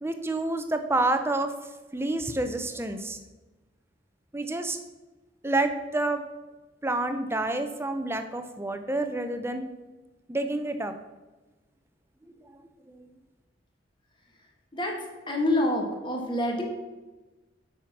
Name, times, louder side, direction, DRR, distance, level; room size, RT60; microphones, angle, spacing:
voice 1, 0.0-1.5 1.9-3.2 4.3-4.8 5.4-6.2 6.8-9.6 10.3-10.9 12.5-12.6 12.9-13.1, right 2 dB, 15° right, 8 dB, 0.6 m, -28 dB
voice 2, 14.7-16.6, left 1 dB, 25° left, 1 dB, 1.6 m, -27 dB
7.5 x 5.6 x 5.8 m, 1.2 s
head